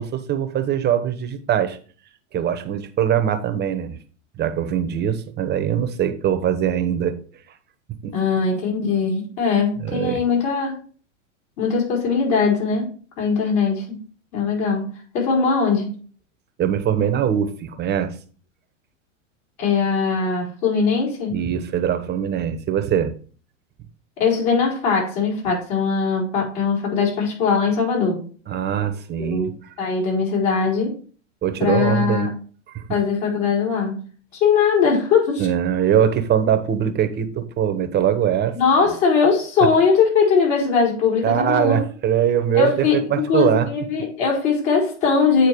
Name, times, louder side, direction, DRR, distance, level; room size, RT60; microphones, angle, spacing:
voice 1, 0.0-1.8 2.3-4.0 4.4-7.1 8.0-8.1 9.8-10.2 16.6-18.1 21.3-23.1 28.5-29.5 31.4-32.3 32.7-32.8 35.4-38.5 41.2-43.7, right 9 dB, 25° right, 10 dB, 1.0 m, -22 dB
voice 2, 8.1-10.8 11.6-12.9 13.2-14.0 14.3-14.9 15.1-15.9 19.6-21.4 24.2-28.2 29.3-30.9 31.6-32.3 32.9-34.0 34.3-35.5 38.5-41.8 42.5-45.5, left 5 dB, 50° left, -2 dB, 4.6 m, -20 dB
8.4 x 4.5 x 4.6 m, 0.41 s
hypercardioid pair, 115°, 38 cm